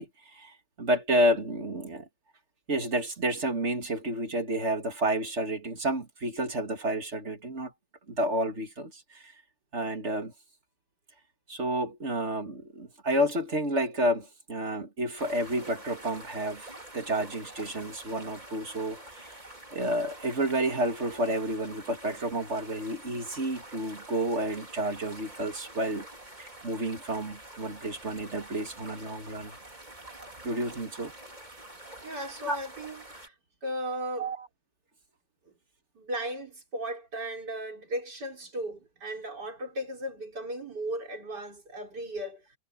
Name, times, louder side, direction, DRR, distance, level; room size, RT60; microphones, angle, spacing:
voice 1, 0.0-2.1 2.7-7.7 8.1-9.3 9.7-10.3 11.5-19.4 19.7-26.1 26.4-29.6 30.4-31.1 32.5-32.6 34.2-34.5, right 1 dB, 40° right, 2.8 m, -30 dB
sound 1, 15.2-33.3, right 1 dB, 25° right, 4.3 m, -47 dB
voice 2, 32.0-33.3 33.6-34.3 35.5-35.6 36.0-42.5, right 1 dB, 90° right, 5.4 m, -36 dB
omnidirectional pair, 1.8 m